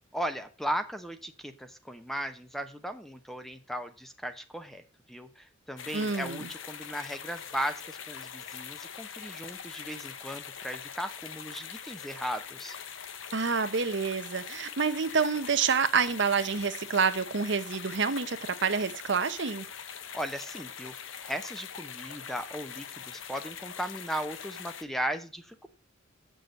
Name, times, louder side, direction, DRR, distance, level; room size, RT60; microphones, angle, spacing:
voice 1, 0.1-4.8 5.1-12.8 20.1-25.7, equal, ahead, 0.8 m, -37 dB
sound 1, 5.8-24.8, left 7 dB, 75° left, 0.9 m, -43 dB
voice 2, 5.9-6.5 13.3-19.7, right 5 dB, 60° right, 0.9 m, -28 dB
8.5 x 6.3 x 6.3 m
head